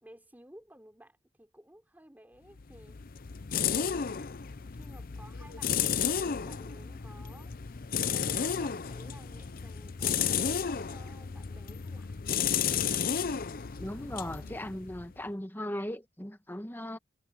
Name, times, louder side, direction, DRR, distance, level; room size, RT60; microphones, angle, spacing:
voice 1, 0.0-3.0 3.7-4.3 4.8-7.7 8.1-12.2, right 1 dB, 10° right, 3.5 m, -55 dB
sound 1, 2.6-15.2, left 7 dB, 55° left, 0.6 m, -33 dB
voice 2, 13.8-17.0, left 1 dB, 10° left, 1.4 m, -38 dB
head